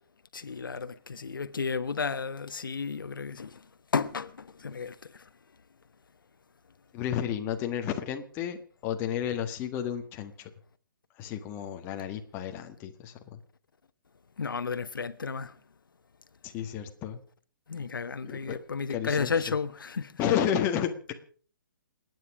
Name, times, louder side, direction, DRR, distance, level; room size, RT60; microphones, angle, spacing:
voice 1, 0.3-3.6 3.9-5.1 14.4-15.5 17.7-20.2, left 5 dB, 85° left, 1.1 m, -33 dB
voice 2, 6.9-8.6 8.8-10.5 11.2-13.4 16.4-17.2 18.2-18.6 18.9-19.3 20.2-21.1, left 9 dB, 20° left, 1.6 m, -31 dB
28.5 x 9.6 x 4.9 m
hypercardioid pair, 155°, 11 cm